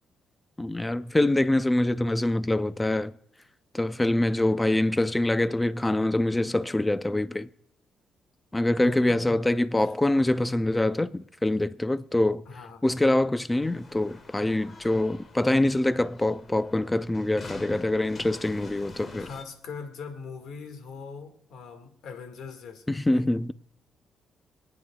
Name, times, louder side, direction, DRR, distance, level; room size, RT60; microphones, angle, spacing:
voice 1, 0.6-3.1 3.7-7.5 8.5-12.4 12.8-19.3 22.9-23.5, left 1 dB, 15° left, 0.5 m, -25 dB
voice 2, 8.8-9.4 9.8-9.9 12.5-12.8 19.2-23.3, left 5 dB, 75° left, 1.9 m, -41 dB
sound 1, 13.6-19.4, left 4 dB, 40° left, 1.4 m, -47 dB
25.5 x 9.7 x 2.4 m
cardioid pair, 90°, 0 cm